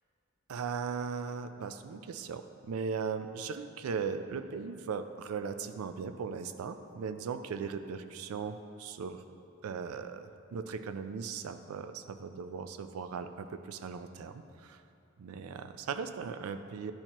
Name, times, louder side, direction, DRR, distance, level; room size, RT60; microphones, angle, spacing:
voice 1, 0.5-9.2 9.6-14.8 15.2-16.9, right 5 dB, 90° right, 9 dB, 0.4 m, -38 dB
10.5 x 4.4 x 2.9 m, 2.6 s
head